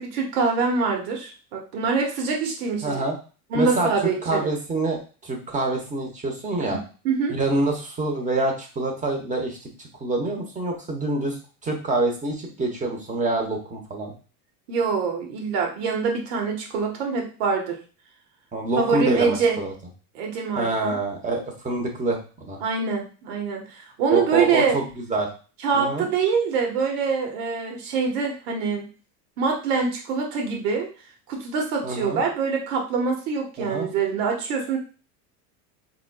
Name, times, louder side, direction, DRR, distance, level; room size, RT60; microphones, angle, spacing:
voice 1, 0.0-3.0 3.5-4.5 6.6-7.3 14.7-17.8 18.8-19.6 20.1-21.0 22.6-24.8 25.6-28.9 29.4-30.9 31.3-34.8, right 5 dB, 80° right, 1 dB, 1.5 m, -25 dB
voice 2, 2.8-3.2 3.5-3.9 4.2-6.8 7.3-9.7 10.0-14.1 18.5-19.7 20.5-22.6 24.1-25.3 25.7-26.1 31.8-32.2 33.6-33.9, right 2 dB, 15° right, 1 dB, 1.0 m, -26 dB
4.0 x 3.6 x 2.3 m, 0.36 s
supercardioid pair, 125°, 46 cm